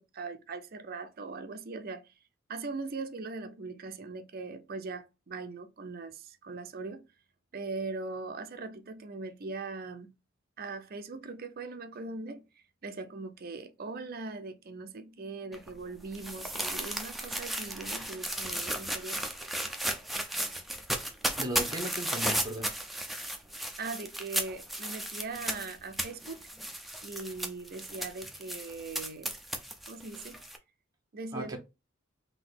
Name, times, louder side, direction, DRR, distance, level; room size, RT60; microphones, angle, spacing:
voice 1, 0.0-2.1 2.5-7.0 7.5-10.1 10.6-12.5 12.8-19.2 23.8-26.5 27.0-29.3 29.9-30.4 31.1-31.6, right 3 dB, 50° right, 0.5 m, -40 dB
sound 1, 15.5-30.6, right 1 dB, ahead, 0.5 m, -35 dB
voice 2, 21.4-22.7 31.3-31.6, right 1 dB, 20° right, 1.0 m, -36 dB
3.9 x 2.8 x 3.9 m
head